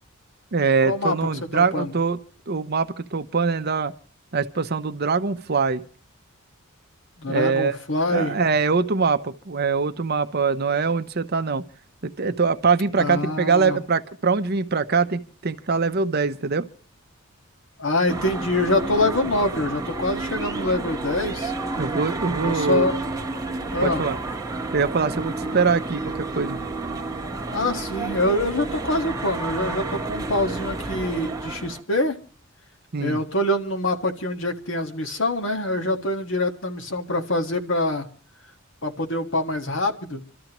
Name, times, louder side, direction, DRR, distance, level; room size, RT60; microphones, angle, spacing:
voice 1, 0.5-2.2 2.5-3.9 4.3-5.8 7.3-7.8 8.1-11.6 12.0-16.7 21.8-22.9 23.8-24.2 24.7-26.6 32.9-33.2, right 5 dB, 45° right, 0.7 m, -23 dB
voice 2, 1.5-1.9 7.2-8.4 13.0-13.8 17.8-21.5 22.4-23.0 23.7-24.1 25.4-25.5 27.5-32.2 33.0-38.1 38.8-40.2, left 1 dB, 60° left, 1.7 m, -25 dB
sound 1, 18.1-31.8, right 3 dB, 15° right, 1.2 m, -30 dB
28.0 x 13.0 x 3.0 m
head